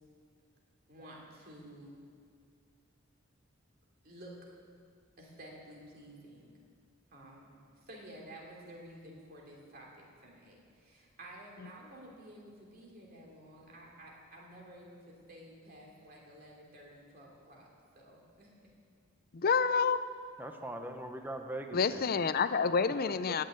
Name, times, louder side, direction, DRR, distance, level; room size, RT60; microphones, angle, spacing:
voice 1, 0.9-2.0 4.0-4.3 5.2-6.5 7.1-17.7 17.9-18.7 21.7-21.8, right 1 dB, 50° right, -2 dB, 3.1 m, -52 dB
voice 2, 19.3-20.0 21.7-23.4, left 5 dB, 50° left, 13 dB, 0.5 m, -28 dB
voice 3, 20.4-22.1 23.0-23.3, right 1 dB, 10° right, 5 dB, 1.0 m, -41 dB
16.5 x 6.7 x 9.4 m, 2.1 s
head